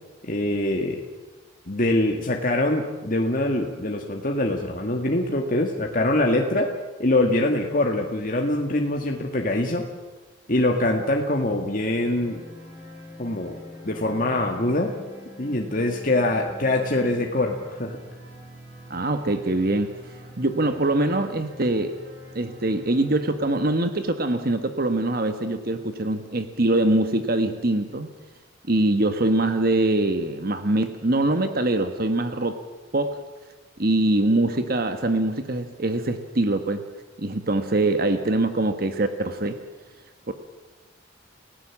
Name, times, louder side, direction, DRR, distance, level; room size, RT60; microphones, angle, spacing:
voice 1, 0.2-1.0 1.7-6.7 7.0-9.9 10.5-12.4 13.2-14.9 15.4-18.0, left 1 dB, 45° left, 1 dB, 1.9 m, -24 dB
sound 1, 11.7-23.5, left 1 dB, 15° right, 7.9 m, -44 dB
voice 2, 18.9-22.0 22.3-28.1 28.7-32.6 32.9-33.2 33.8-36.8 37.2-39.6 40.3-40.4, right 2 dB, 50° right, 8 dB, 1.3 m, -23 dB
29.5 x 17.0 x 7.4 m, 1.2 s
head